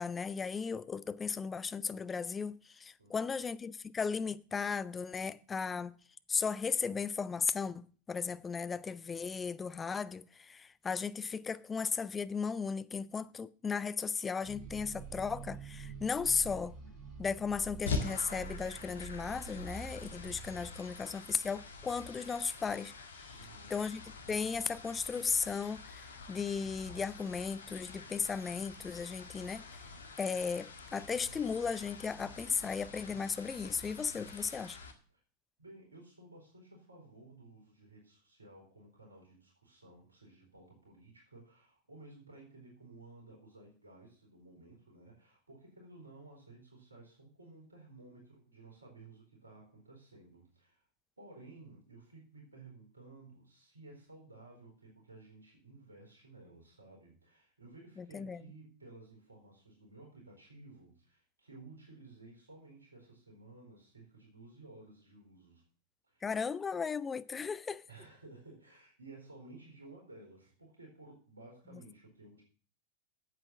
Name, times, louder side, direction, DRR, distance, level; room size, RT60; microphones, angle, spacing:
voice 1, 0.0-5.9 6.3-16.7 17.2-22.9 23.2-23.4 23.7-24.0 24.3-29.6 30.2-34.8 58.0-58.4 66.2-67.8 71.7-71.8, left 5 dB, 15° left, 0.6 m, -36 dB
voice 2, 3.0-3.4 23.3-23.8 35.1-35.2 35.6-50.8 51.2-65.6 66.1-66.3 67.9-72.4, right 2 dB, 75° right, 4.3 m, -55 dB
sound 1, 14.4-20.8, right 5 dB, 25° right, 5.6 m, -47 dB
sound 2, 17.9-34.9, left 4 dB, 70° left, 1.7 m, -45 dB
9.2 x 8.2 x 7.2 m
figure-of-eight pair, 90°, 0 cm